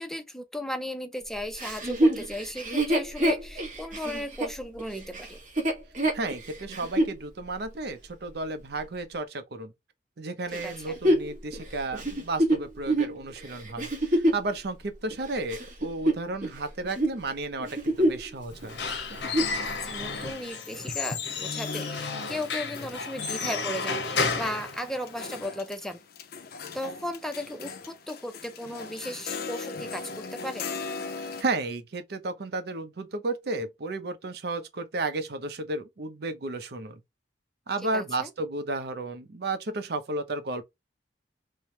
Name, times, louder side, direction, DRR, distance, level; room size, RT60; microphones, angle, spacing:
voice 1, 0.0-5.4 10.6-11.0 19.8-26.0 26.7-30.7 37.9-38.3, left 1 dB, ahead, 0.5 m, -36 dB
Chuckle chortle, 1.6-7.2 7.7-7.8 10.5-14.5 15.1-16.6 16.8-17.2 17.6-18.3 18.6-18.7 19.1-19.6 20.2-20.3, right 1 dB, 50° right, 1.2 m, -26 dB
voice 2, 6.1-9.7 10.2-18.8 31.2-37.0 37.7-40.6, right 2 dB, 65° right, 0.6 m, -33 dB
Squeak / Wood, 18.5-25.4, left 4 dB, 80° left, 0.9 m, -32 dB
sound 1, 21.4-31.4, left 4 dB, 60° left, 0.6 m, -40 dB
3.2 x 2.1 x 2.7 m
head